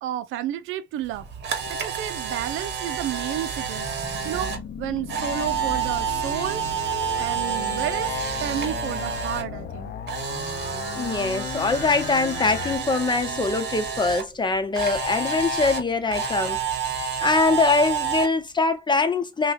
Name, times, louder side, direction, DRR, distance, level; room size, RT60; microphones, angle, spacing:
voice 1, 0.0-1.3 1.7-3.9 4.2-8.1 8.4-9.9, right 12 dB, 90° right, 0.5 m, -31 dB
Camera, 1.1-9.4 9.7-14.2 14.7-18.3, right 6 dB, 60° right, 1.1 m, -29 dB
sound 1, 3.5-12.8, left 8 dB, 55° left, 0.5 m, -36 dB
voice 2, 10.9-16.6 17.2-19.5, left 3 dB, 25° left, 0.8 m, -23 dB
5.5 x 2.3 x 2.5 m
cardioid pair, 90°, 20 cm